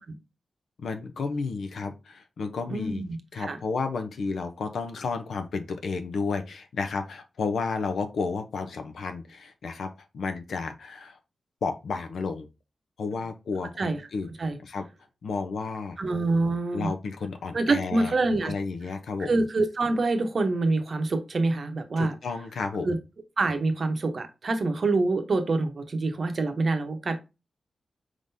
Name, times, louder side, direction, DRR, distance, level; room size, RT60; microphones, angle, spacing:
voice 1, 0.8-3.0 3.3-9.9 10.1-11.2 11.6-12.5 13.0-14.3 14.6-14.8 15.2-16.0 16.7-18.1 18.4-19.3 22.0-22.9, left 4 dB, 80° left, 7 dB, 0.7 m, -32 dB
voice 2, 2.7-3.6 13.8-14.0 14.4-14.6 16.0-16.9 17.5-18.5 19.2-22.1 22.8-23.0 23.4-27.2, right 3 dB, 45° right, 7 dB, 0.8 m, -26 dB
4.9 x 3.8 x 2.7 m, 0.26 s
wide cardioid pair, 160°, 0 cm